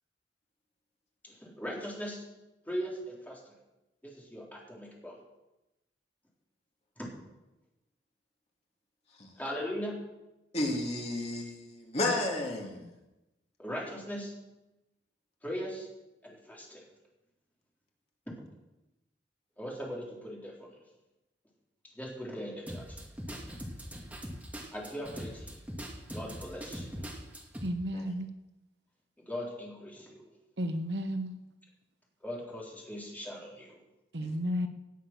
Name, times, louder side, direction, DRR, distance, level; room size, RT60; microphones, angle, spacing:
voice 1, 1.2-2.2 2.7-3.5 4.0-5.2 7.0-7.1 9.4-10.0 13.6-14.3 15.4-15.9 16.2-16.8 19.6-20.7 21.9-23.0 24.7-25.5 26.1-27.1 29.3-30.2 32.2-33.8, equal, 10° left, 3.8 m, -39 dB
voice 2, 10.5-12.8 27.9-28.0 34.2-34.3, left 2 dB, 40° left, 2.6 m, -32 dB
sound 1, 22.7-27.7, equal, 10° right, 2.3 m, -41 dB
voice 3, 27.6-28.3 30.6-31.4 34.1-34.7, equal, 70° right, 1.1 m, -32 dB
18.0 x 8.0 x 6.2 m
head